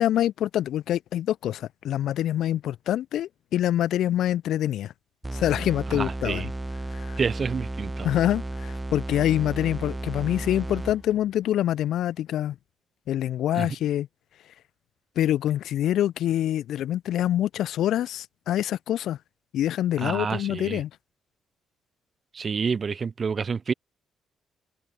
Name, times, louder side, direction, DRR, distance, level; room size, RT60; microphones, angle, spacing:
voice 1, 0.0-4.9 5.3-6.5 6.9-7.2 8.0-12.6 13.1-14.1 15.2-19.2 19.5-20.9, left 12 dB, 60° left, 0.5 m, -25 dB
sound 1, 5.2-11.3, right 2 dB, 15° right, 1.2 m, -33 dB
voice 2, 5.9-6.5 7.2-8.1 13.5-13.7 20.0-20.8 22.3-23.7, right 5 dB, 40° right, 0.5 m, -28 dB
open air
figure-of-eight pair, 40°, 0 cm